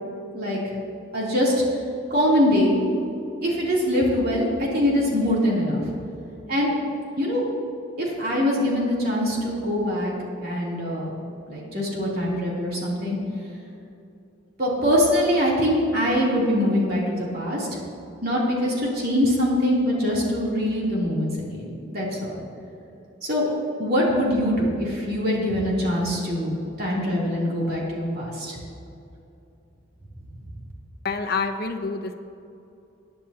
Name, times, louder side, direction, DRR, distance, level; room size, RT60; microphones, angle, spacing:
voice 1, 0.3-0.7 1.1-1.5 2.1-2.8 3.4-5.9 6.5-6.7 7.2-7.4 8.0-10.1 10.4-11.1 11.5-13.2 14.6-17.8 18.2-22.4 23.2-23.5 23.8-28.6, equal, 50° right, -5 dB, 3.2 m, -23 dB
voice 2, 31.0-32.1, left 4 dB, 50° left, 7 dB, 0.8 m, -27 dB
21.0 x 10.0 x 2.9 m, 2.7 s
head